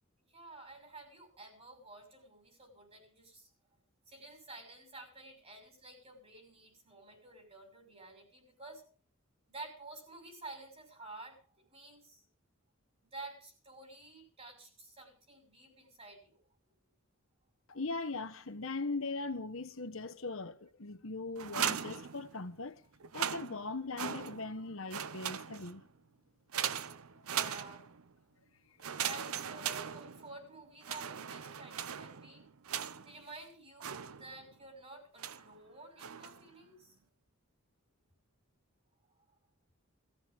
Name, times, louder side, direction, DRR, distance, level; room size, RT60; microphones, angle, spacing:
voice 1, 0.2-3.5 4.1-8.8 9.5-12.2 13.0-16.4 27.2-27.8 29.0-32.5 33.0-37.0, right 2 dB, 30° right, 6.1 m, -51 dB
voice 2, 17.7-22.8 23.1-25.8, left 3 dB, 65° left, 1.4 m, -40 dB
sound 1, 21.4-22.6 23.0-24.6 24.9-25.9 26.5-28.1 28.8-30.4 30.8-33.2 33.8-34.5 35.2-35.6 36.0-36.5, right 9 dB, 80° right, 0.7 m, -39 dB
18.5 x 15.0 x 3.7 m
head